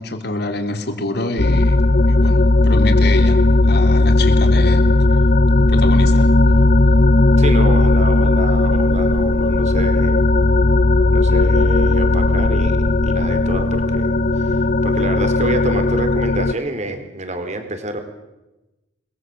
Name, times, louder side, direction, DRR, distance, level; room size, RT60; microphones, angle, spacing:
voice 1, 0.0-1.8 2.1-4.9 5.5-6.3 11.3-11.4, left 2 dB, 65° left, 7 dB, 3.5 m, -26 dB
sound 1, 1.4-16.5, left 2 dB, 45° left, 0.8 m, -15 dB
voice 2, 7.4-10.2 11.1-12.8 13.0-18.0, right 1 dB, 40° right, 7 dB, 4.2 m, -28 dB
29.0 x 21.5 x 7.9 m, 1.0 s
head